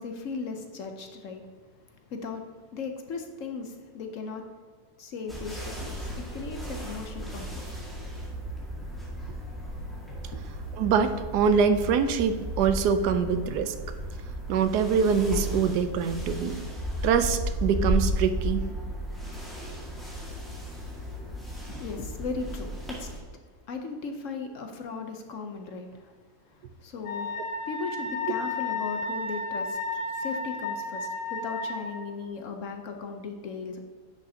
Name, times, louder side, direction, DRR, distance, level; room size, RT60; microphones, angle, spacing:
voice 1, 0.0-1.5 2.1-2.4 2.7-4.5 5.0-7.7 10.3-10.4 21.5-23.1 23.7-26.2 26.4-27.3 27.7-33.8, left 4 dB, 60° left, 5 dB, 1.0 m, -37 dB
sound 1, 5.3-23.2, equal, ahead, 1.6 m, -34 dB
voice 2, 10.8-13.7 14.5-16.6 17.0-18.6, right 6 dB, 80° right, 10 dB, 1.2 m, -24 dB
Wind instrument woodwind instrument, 27.0-31.9, left 3 dB, 85° left, 2.1 m, -32 dB
10.0 x 6.4 x 2.8 m, 1.5 s
omnidirectional pair, 1.8 m